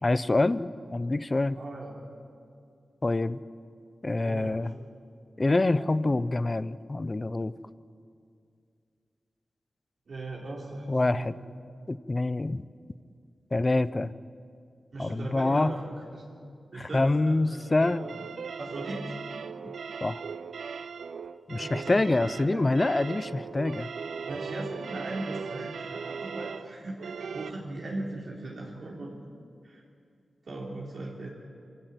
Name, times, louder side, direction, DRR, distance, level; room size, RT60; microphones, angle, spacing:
voice 1, 0.0-1.6 3.0-3.4 4.0-4.7 5.4-7.5 10.9-11.3 11.9-12.6 13.5-14.1 15.0-15.7 16.7-18.1 20.0-20.2 21.5-23.9, left 2 dB, 30° left, 15 dB, 0.6 m, -26 dB
voice 2, 1.5-1.9 4.2-4.7 10.1-11.5 14.9-16.2 16.7-18.2 18.6-19.2 21.5-22.6 24.3-29.1 29.6-29.8 30.4-31.3, right 2 dB, 65° right, -4 dB, 3.8 m, -39 dB
sound 1, 17.8-27.5, right 6 dB, 85° right, 0.7 m, -38 dB
26.0 x 16.0 x 9.2 m, 2.3 s
wide cardioid pair, 95°, 0 cm